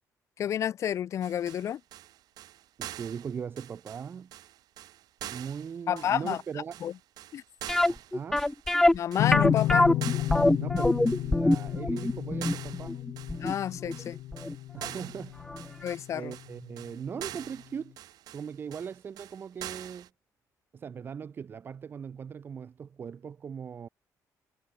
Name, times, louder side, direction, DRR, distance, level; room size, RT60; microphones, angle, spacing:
voice 1, 0.4-1.8 5.9-6.4 6.8-6.9 7.3-7.4 8.9-9.9 13.4-14.2 15.8-16.3, left 10 dB, 45° left, 2.2 m, -30 dB
sound 1, 1.2-20.1, right 13 dB, 75° right, 4.2 m, -45 dB
voice 2, 2.8-4.3 5.2-6.8 7.9-8.4 10.5-13.0 14.7-15.4 16.1-18.0 18.3-20.1 20.7-23.9, right 7 dB, 30° right, 1.5 m, -39 dB
sound 2, 7.7-14.5 14.8-14.9 15.5-15.6 15.9-16.0, left 1 dB, 5° left, 0.4 m, -24 dB
sound 3, 9.2-16.4, left 15 dB, 85° left, 0.6 m, -32 dB
cardioid pair, 180°, 7 cm